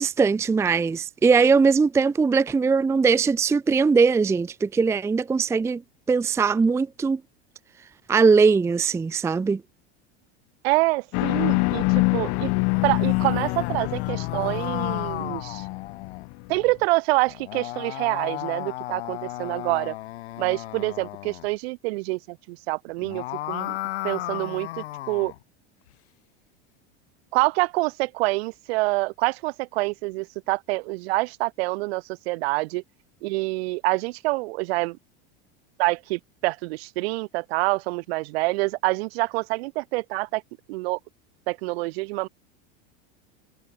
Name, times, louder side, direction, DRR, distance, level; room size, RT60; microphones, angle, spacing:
voice 1, 0.0-5.8 6.1-7.2 8.1-9.6, right 5 dB, 10° right, 0.5 m, -20 dB
voice 2, 10.6-12.5 12.8-15.7 16.5-19.9 20.4-23.8 24.0-25.3 27.3-32.8 33.2-35.0 35.8-40.4 40.7-41.0 41.5-42.3, right 23 dB, 70° right, 3.2 m, -26 dB
sound 1, 11.1-16.6, left 30 dB, 55° left, 3.2 m, -25 dB
sound 2, 12.4-16.3 17.3-21.5 22.9-25.4, left 16 dB, 90° left, 5.9 m, -34 dB
supercardioid pair, 140°, 32 cm